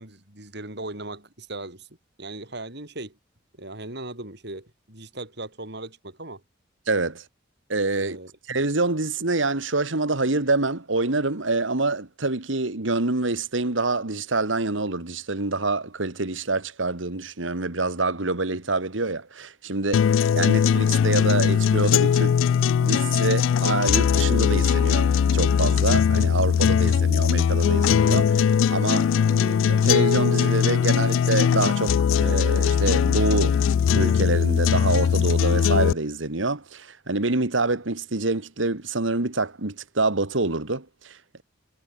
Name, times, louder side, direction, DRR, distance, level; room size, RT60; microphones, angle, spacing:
voice 1, 0.0-1.9 2.2-3.2 3.5-6.4 8.0-8.3, right 2 dB, 60° right, 7.6 m, -38 dB
voice 2, 6.9-7.2 7.7-8.2 8.5-22.4 22.8-33.6 33.9-41.4, right 3 dB, 90° right, 2.1 m, -26 dB
sound 1, 19.9-35.9, left 7 dB, 90° left, 0.3 m, -20 dB
head